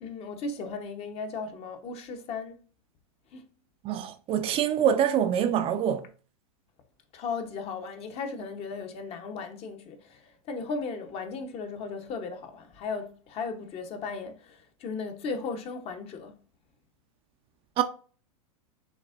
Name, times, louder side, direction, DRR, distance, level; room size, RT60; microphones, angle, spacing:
voice 1, 0.0-2.6 3.3-3.4 7.1-16.4, left 4 dB, 35° left, 1.0 m, -36 dB
voice 2, 3.8-6.1 17.8-17.9, right 9 dB, 30° right, 0.5 m, -25 dB
6.2 x 3.3 x 2.5 m
hypercardioid pair, 115°, 18 cm